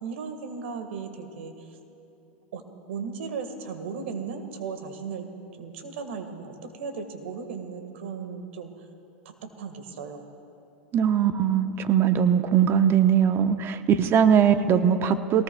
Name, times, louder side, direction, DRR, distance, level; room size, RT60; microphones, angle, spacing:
voice 1, 0.0-1.8 2.5-2.6 2.9-8.7 9.2-10.2, right 5 dB, 75° right, 7 dB, 1.6 m, -36 dB
voice 2, 10.9-15.4, right 8 dB, 35° right, 10 dB, 0.8 m, -21 dB
22.0 x 19.0 x 2.3 m, 3.0 s
hypercardioid pair, 100°, 7 cm